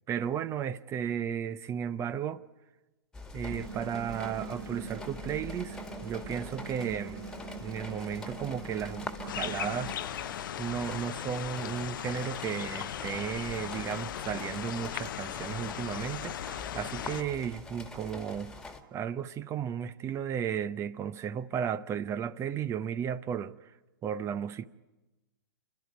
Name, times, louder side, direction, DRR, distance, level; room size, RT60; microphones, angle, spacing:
voice 1, 0.1-2.4 3.3-7.2 7.6-10.0 10.6-18.5 18.9-23.7 24.0-24.7, right 8 dB, 25° right, 0.6 m, -34 dB
sound 1, 3.1-18.8, left 3 dB, 5° left, 1.9 m, -45 dB
sound 2, 3.5-9.9, right 4 dB, 90° right, 3.6 m, -43 dB
sound 3, 9.3-17.2, left 11 dB, 60° left, 0.7 m, -38 dB
29.5 x 12.5 x 9.6 m
hypercardioid pair, 115°, 12 cm